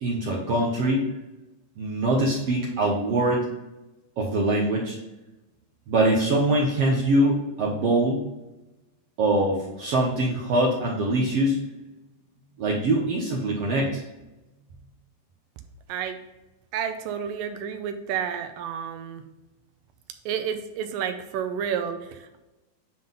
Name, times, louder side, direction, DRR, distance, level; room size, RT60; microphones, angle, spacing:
voice 1, 0.0-1.0 1.8-3.4 4.2-5.0 5.9-8.2 9.2-11.6 12.6-14.0, right 1 dB, 65° right, -3 dB, 1.7 m, -23 dB
voice 2, 16.7-19.2 20.3-22.4, right 8 dB, 85° right, 8 dB, 2.3 m, -30 dB
9.2 x 3.8 x 3.8 m, 1.0 s
omnidirectional pair, 3.9 m